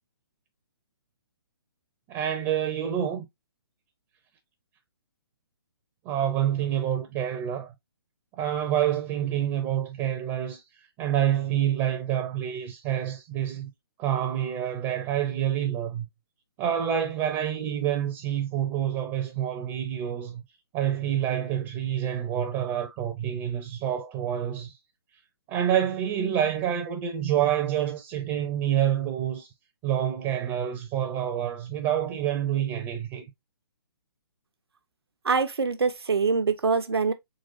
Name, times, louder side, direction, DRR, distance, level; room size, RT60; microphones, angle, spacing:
voice 1, 2.1-3.3 6.0-7.7 8.4-10.6 11.0-13.7 14.0-16.1 16.6-20.4 20.7-24.7 25.5-29.5 29.8-33.3, right 10 dB, 25° right, 0.6 m, -27 dB
voice 2, 35.2-37.1, right 5 dB, 75° right, 0.8 m, -24 dB
4.0 x 3.0 x 2.6 m
figure-of-eight pair, 135°, 13 cm